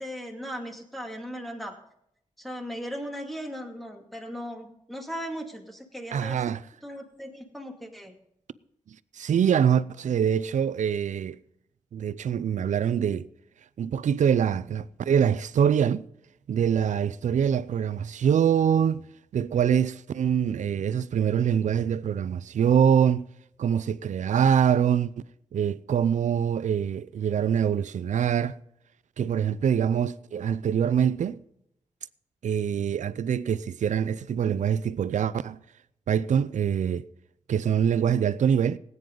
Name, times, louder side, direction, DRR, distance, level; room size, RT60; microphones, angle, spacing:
voice 1, 0.0-1.8 2.4-6.5 6.8-8.1, equal, ahead, 2.3 m, -37 dB
voice 2, 6.1-6.6 9.2-11.4 11.9-13.3 13.8-16.0 16.5-19.0 19.3-23.3 23.6-25.1 25.5-28.6 29.2-31.4 32.4-35.6 36.1-37.1 37.5-38.8, right 8 dB, 80° right, 0.5 m, -24 dB
18.5 x 9.4 x 3.9 m
wide cardioid pair, 105°, 12 cm